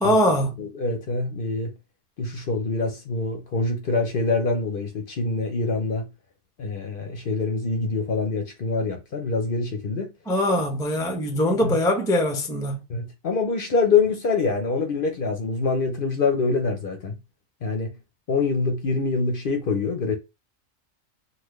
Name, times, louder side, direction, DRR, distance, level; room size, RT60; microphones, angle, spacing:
voice 1, 0.0-0.6 10.3-12.8, left 1 dB, 5° left, 0.4 m, -22 dB
voice 2, 0.6-1.7 2.2-6.1 6.6-10.1 11.6-11.8 12.9-17.2 17.6-17.9 18.3-20.2, left 4 dB, 50° left, 0.7 m, -25 dB
3.7 x 2.2 x 3.1 m
omnidirectional pair, 1.3 m